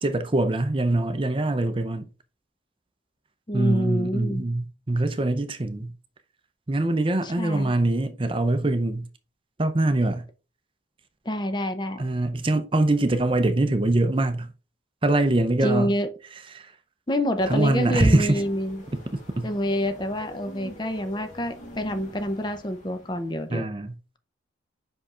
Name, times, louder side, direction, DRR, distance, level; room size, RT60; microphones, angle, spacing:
voice 1, 0.0-2.1 3.5-5.9 6.7-9.1 9.6-10.3 12.0-14.5 15.0-15.9 16.5-16.7 17.5-18.4 18.9-19.0 19.4-19.5 23.5-23.9, right 2 dB, 25° right, 0.5 m, -23 dB
voice 2, 3.5-4.5 7.2-7.7 11.3-12.0 15.6-16.1 17.1-18.8 19.4-23.7, equal, 25° left, 0.6 m, -27 dB
sound 1, 17.4-23.5, equal, 40° left, 1.8 m, -43 dB
5.5 x 5.1 x 3.7 m
head